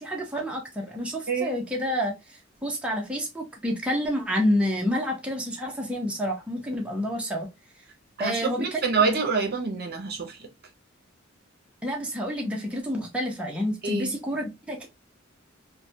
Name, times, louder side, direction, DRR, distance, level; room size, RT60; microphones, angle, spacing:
voice 1, 0.0-7.5 8.2-8.8 11.8-14.9, equal, 5° right, 0.6 m, -29 dB
voice 2, 8.2-10.4 13.8-14.1, right 4 dB, 50° right, 0.7 m, -26 dB
3.2 x 2.2 x 2.7 m
head